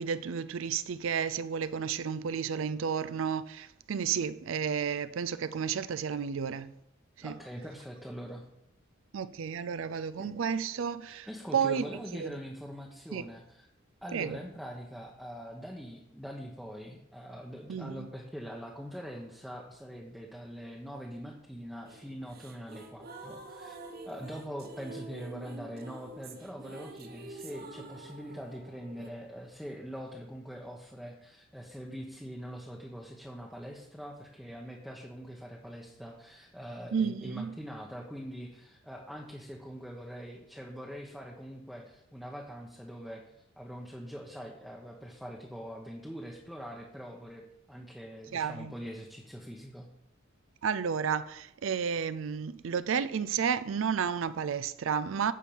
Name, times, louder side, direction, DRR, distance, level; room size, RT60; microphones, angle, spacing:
voice 1, 0.0-6.7 7.2-7.4 9.1-11.8 12.1-12.4 13.1-13.3 14.1-14.4 17.7-18.1 36.9-37.5 48.3-48.7 50.6-55.3, right 7 dB, 70° right, 0.4 m, -32 dB
voice 2, 7.2-8.4 10.2-10.4 11.1-13.7 14.0-23.8 24.1-43.2 43.6-49.9, equal, ahead, 0.9 m, -43 dB
sound 1, 21.8-29.1, right 2 dB, 50° right, 1.1 m, -47 dB
10.0 x 4.6 x 7.0 m
head